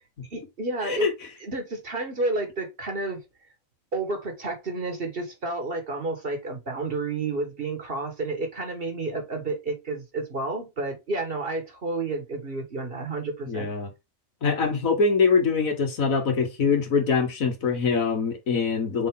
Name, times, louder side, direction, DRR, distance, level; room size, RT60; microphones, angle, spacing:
voice 1, 0.3-1.1 1.4-3.2 3.9-13.7, right 2 dB, 45° right, 1.7 m, -30 dB
voice 2, 13.5-13.9 14.4-19.1, left 5 dB, 85° left, 1.9 m, -23 dB
6.1 x 4.2 x 3.7 m
omnidirectional pair, 1.4 m